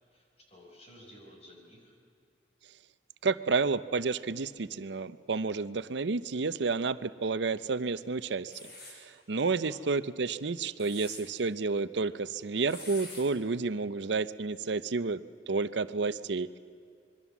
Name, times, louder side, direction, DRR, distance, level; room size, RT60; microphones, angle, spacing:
voice 1, 0.1-2.0 9.6-9.9, equal, 35° left, 0 dB, 5.4 m, -54 dB
voice 2, 3.2-15.2 15.5-16.6, right 4 dB, 75° right, 14 dB, 0.7 m, -31 dB
sound 1, 8.5-9.0 10.6-11.2 12.7-13.2, left 2 dB, 60° left, 6.4 m, -45 dB
25.5 x 22.5 x 7.2 m, 2.4 s
head